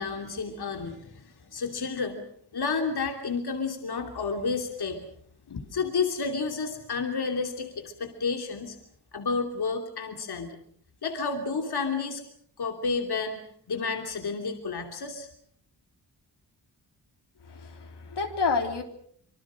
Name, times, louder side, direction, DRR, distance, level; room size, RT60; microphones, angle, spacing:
voice 1, 0.0-2.2 2.5-5.1 5.7-8.8 9.1-10.6 11.0-12.2 12.6-13.4 13.7-15.3, left 4 dB, 70° left, 4 dB, 3.0 m, -31 dB
voice 2, 17.5-18.8, left 4 dB, 85° left, 4 dB, 3.5 m, -29 dB
26.0 x 24.5 x 6.3 m, 0.63 s
wide cardioid pair, 90°, 41 cm